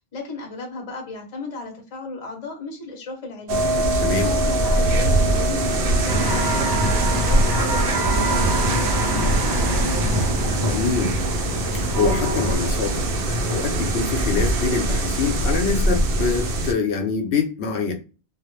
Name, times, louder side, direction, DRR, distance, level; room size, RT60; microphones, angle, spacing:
voice 1, 0.1-3.7 4.1-10.1, left 3 dB, 40° left, 2 dB, 0.7 m, -35 dB
sound 1, 3.5-16.7, right 1 dB, 70° right, 0.7 m, -22 dB
voice 2, 4.0-4.3 10.7-11.2 11.7-17.9, left 5 dB, 80° left, 4 dB, 0.8 m, -25 dB
sound 2, 6.1-12.6, right 1 dB, 30° right, 0.5 m, -25 dB
2.2 x 2.0 x 2.9 m, 0.33 s
omnidirectional pair, 1.1 m